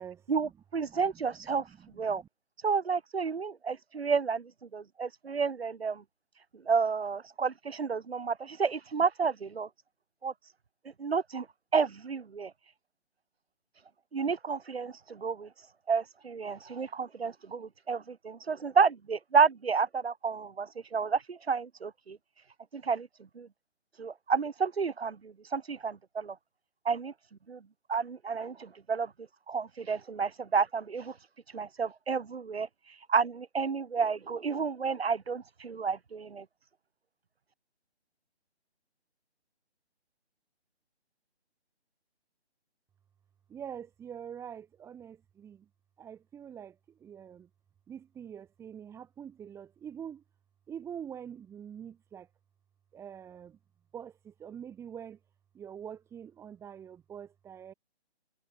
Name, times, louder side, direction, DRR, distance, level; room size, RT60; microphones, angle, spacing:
voice 1, 0.3-1.6 2.0-2.2 2.6-6.0 6.7-9.7 10.2-10.3 11.0-11.5 11.7-12.5 14.1-15.5 15.9-22.2 22.7-23.1 23.4-23.5 24.0-26.4 26.9-27.1 27.5-27.6 27.9-29.1 29.5-31.1 31.5-32.7 33.1-36.4, right 5 dB, 65° right, 3.6 m, -30 dB
voice 2, 0.9-1.2 1.6-2.3 43.5-45.6 46.0-46.7 47.0-47.5 47.9-50.2 50.7-52.3 52.9-53.6 53.9-55.2 55.5-57.7, right 8 dB, 10° right, 6.4 m, -45 dB
figure-of-eight pair, 155°, 33 cm